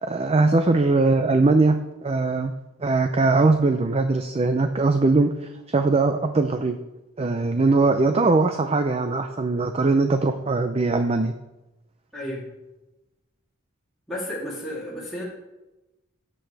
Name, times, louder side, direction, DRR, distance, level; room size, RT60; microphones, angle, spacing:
voice 1, 0.0-2.5 2.8-6.8 7.2-11.3, right 3 dB, 30° right, 7 dB, 0.5 m, -21 dB
voice 2, 12.1-12.5 14.1-15.2, equal, ahead, -10 dB, 3.0 m, -32 dB
17.0 x 7.7 x 3.4 m, 1.0 s
head